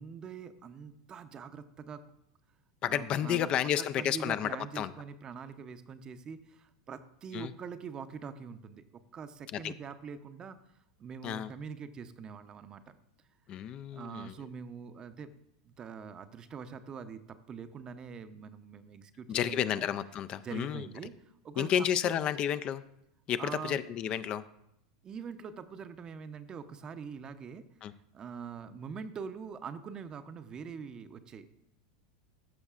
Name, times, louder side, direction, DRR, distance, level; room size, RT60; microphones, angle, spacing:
voice 1, 0.0-2.0 2.9-3.5 3.8-10.6 11.0-12.9 13.9-15.3 15.6-19.9 20.4-21.1 21.4-21.7 22.0-22.2 23.4-23.8 25.0-27.6 28.1-31.5, right 6 dB, 30° right, 11 dB, 0.6 m, -44 dB
voice 2, 2.8-4.9 7.3-7.5 9.5-9.7 11.2-11.5 13.5-14.3 19.3-20.9 21.6-22.8 23.3-24.5 27.8-27.9, left 10 dB, 40° left, 13 dB, 0.3 m, -31 dB
14.5 x 6.1 x 2.4 m, 0.78 s
hypercardioid pair, 95°, 3 cm